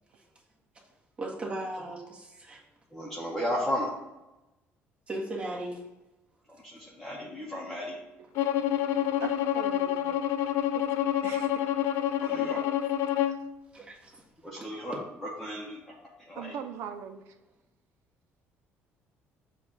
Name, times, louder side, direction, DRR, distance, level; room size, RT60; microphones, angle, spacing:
voice 1, 1.2-2.6 5.1-5.8 8.8-9.3 13.7-14.2 14.5-14.8, right 1 dB, 25° right, -3 dB, 1.4 m, -38 dB
voice 2, 2.9-3.9 6.6-8.0 12.2-12.6 14.4-15.9 16.3-16.5, equal, 5° left, -5 dB, 0.9 m, -34 dB
Bowed string instrument, 8.3-13.4, left 11 dB, 85° left, 0.4 m, -28 dB
voice 3, 9.2-10.2 10.7-10.8 11.2-11.6 12.4-12.7 16.4-17.3, right 8 dB, 80° right, 8 dB, 0.6 m, -40 dB
7.0 x 2.4 x 5.4 m, 1.0 s
cardioid pair, 150°, 5 cm